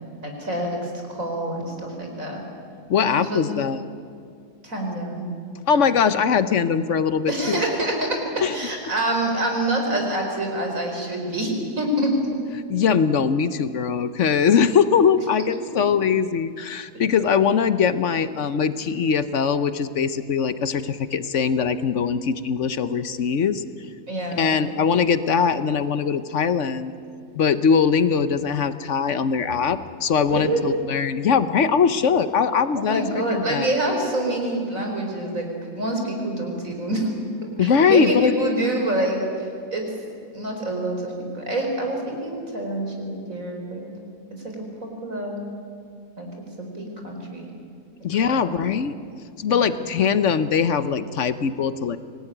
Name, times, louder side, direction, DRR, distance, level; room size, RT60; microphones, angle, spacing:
voice 1, 0.2-2.4 3.0-3.4 4.6-5.3 7.3-12.1 24.1-24.5 30.3-30.6 32.7-35.5 35.7-37.1 37.6-39.5 39.7-39.8 40.3-43.9 44.3-44.5 44.8-45.4 46.2-47.5 48.2-48.5 49.5-49.7, right 1 dB, 55° right, 2 dB, 4.8 m, -26 dB
voice 2, 2.9-3.8 5.7-7.6 8.4-8.5 12.5-23.6 24.4-26.9 27.3-33.7 37.6-38.3 48.0-49.0 49.4-52.0, left 6 dB, 55° left, 12 dB, 1.0 m, -21 dB
25.0 x 19.0 x 9.9 m, 2.4 s
omnidirectional pair, 1.7 m